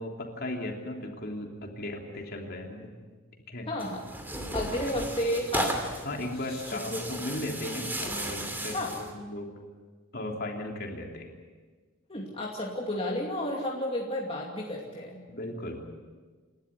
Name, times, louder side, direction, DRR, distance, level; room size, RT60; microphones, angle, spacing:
voice 1, 0.0-2.9 3.5-3.7 4.9-5.1 6.0-8.8 9.1-9.5 10.1-11.3 15.3-15.8, left 1 dB, 45° left, 1 dB, 3.2 m, -36 dB
voice 2, 3.7-4.0 4.5-5.7 6.5-7.1 8.7-8.9 12.1-15.2, left 1 dB, 25° left, -2 dB, 2.5 m, -32 dB
Tearing, 3.8-9.1, right 1 dB, 10° right, 2.6 m, -35 dB
28.5 x 13.0 x 9.7 m, 1.4 s
head